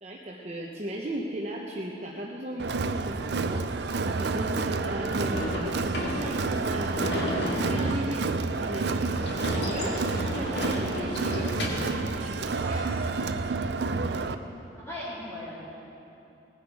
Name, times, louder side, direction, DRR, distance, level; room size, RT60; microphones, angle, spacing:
voice 1, 0.0-7.3 7.7-9.9 10.3-11.5 12.1-12.9, right 1 dB, 35° right, -3 dB, 0.9 m, -36 dB
Crowd, 2.6-14.3, right 3 dB, 60° right, 0.5 m, -29 dB
Sliding door / Slam, 5.3-12.0, left 1 dB, 60° left, 2.0 m, -33 dB
voice 2, 14.8-15.6, left 1 dB, 15° left, -10 dB, 3.3 m, -38 dB
18.5 x 10.0 x 4.8 m, 2.8 s
head